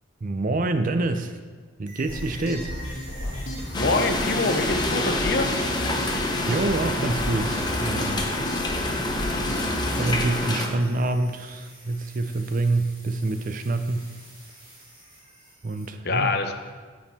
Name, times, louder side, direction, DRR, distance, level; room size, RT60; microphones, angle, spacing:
voice 1, 0.2-1.4 1.8-2.7 6.5-8.3 9.9-14.1 15.6-16.4, right 2 dB, 40° right, 8 dB, 0.5 m, -27 dB
sound 1, 1.9-15.9, right 1 dB, 25° right, 2.0 m, -48 dB
sound 2, 2.1-10.2, equal, 80° left, 1.8 m, -33 dB
voice 2, 3.7-5.5 16.0-16.5, left 3 dB, 50° left, 6 dB, 0.7 m, -25 dB
sound 3, 3.7-10.7, left 2 dB, 20° left, 0.8 m, -27 dB
8.7 x 6.3 x 4.2 m, 1.5 s
head